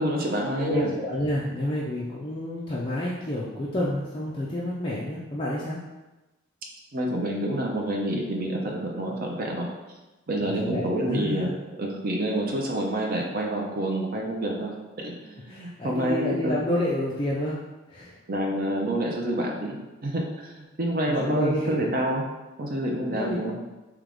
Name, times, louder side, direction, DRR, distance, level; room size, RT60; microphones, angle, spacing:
voice 1, 0.0-0.9 6.9-9.7 10.3-11.5 11.8-14.7 15.0-16.6 18.3-22.2 22.6-23.5, right 1 dB, 40° right, -1 dB, 0.5 m, -28 dB
voice 2, 0.6-5.8 10.4-11.5 15.5-17.6 17.9-18.2 21.1-21.9 23.1-23.6, left 1 dB, 25° left, -6 dB, 0.4 m, -29 dB
3.4 x 2.9 x 3.6 m, 1.1 s
head